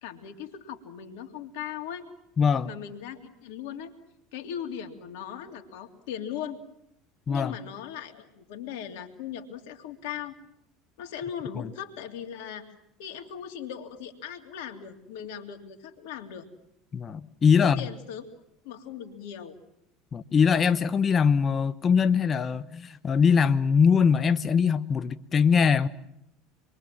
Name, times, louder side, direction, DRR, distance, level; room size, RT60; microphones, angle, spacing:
voice 1, 0.0-2.1 2.6-3.9 4.3-6.6 7.3-10.3 11.0-12.7 13.0-16.5 17.6-19.5, left 9 dB, 75° left, 2.9 m, -39 dB
voice 2, 2.4-2.7 7.3-7.6 16.9-17.8 20.1-25.9, left 6 dB, 35° left, 1.0 m, -22 dB
27.0 x 22.5 x 7.6 m
hypercardioid pair, 80°, 0 cm